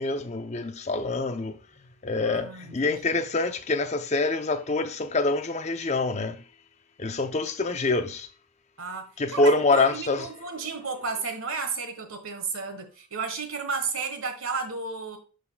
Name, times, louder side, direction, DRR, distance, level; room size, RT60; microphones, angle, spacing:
voice 1, 0.0-1.5 2.0-6.4 7.0-8.3 9.2-10.3, left 3 dB, 30° left, 0.6 m, -26 dB
voice 2, 2.2-3.2 8.8-15.2, right 4 dB, 70° right, 1.4 m, -33 dB
11.5 x 4.0 x 2.2 m
head